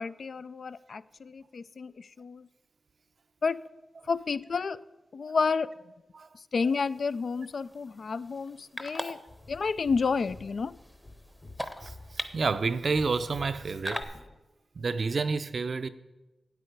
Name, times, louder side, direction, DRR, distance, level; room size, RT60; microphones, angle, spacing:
voice 1, 0.0-2.5 3.4-3.6 4.1-4.8 5.1-5.7 6.5-9.2 9.5-10.8 13.9-14.0, left 5 dB, 65° left, 0.3 m, -30 dB
sound 1, 6.6-14.0, equal, 5° left, 0.8 m, -42 dB
sound 2, 9.3-14.4, left 2 dB, 40° left, 1.2 m, -49 dB
voice 2, 11.8-14.1 14.8-15.9, right 4 dB, 65° right, 0.5 m, -29 dB
8.5 x 8.2 x 5.2 m
cardioid pair, 50°, 0 cm